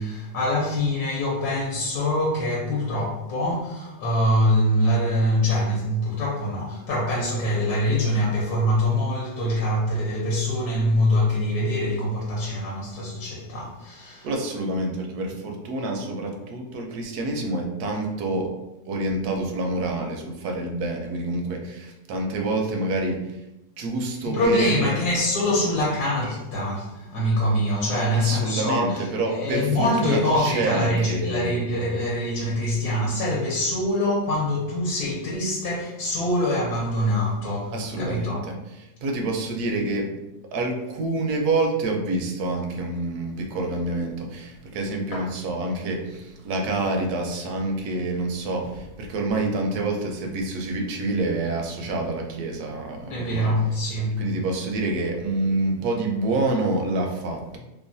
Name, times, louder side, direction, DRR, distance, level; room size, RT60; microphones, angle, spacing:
voice 1, 0.0-14.3 24.2-38.4 45.1-45.3 53.1-54.2, left 1 dB, 75° left, -4 dB, 1.1 m, -24 dB
voice 2, 14.2-18.5 18.8-23.4 23.8-25.0 28.1-31.5 37.7-38.5 39.0-40.1 40.5-53.5 54.2-57.6, right 2 dB, 75° right, 2 dB, 1.0 m, -27 dB
3.0 x 2.0 x 2.6 m, 0.95 s
omnidirectional pair, 1.7 m